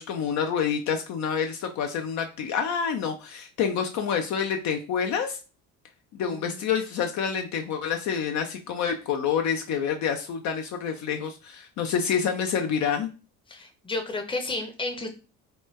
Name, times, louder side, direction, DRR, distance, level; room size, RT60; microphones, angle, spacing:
voice 1, 0.0-5.4 6.1-13.1, left 7 dB, 55° left, 5 dB, 0.5 m, -28 dB
voice 2, 6.2-6.7 13.5-15.1, left 2 dB, 15° left, 5 dB, 0.7 m, -32 dB
3.1 x 2.2 x 3.1 m, 0.34 s
supercardioid pair, 75°, 34 cm